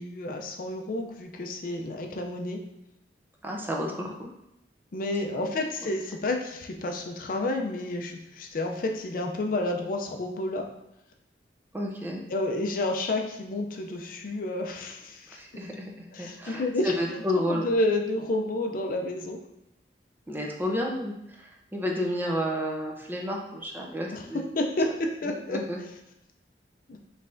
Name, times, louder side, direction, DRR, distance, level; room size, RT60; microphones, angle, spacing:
voice 1, 0.0-2.6 4.0-4.1 4.9-10.7 12.3-15.4 16.1-19.4 24.1-25.6 26.9-27.0, left 2 dB, 50° left, 3 dB, 0.4 m, -30 dB
voice 2, 3.4-4.3 5.3-5.4 5.8-5.9 11.7-12.2 15.3-17.6 20.3-24.4 25.5-25.8, equal, 10° right, -1 dB, 0.5 m, -31 dB
5.5 x 3.2 x 2.6 m, 0.83 s
head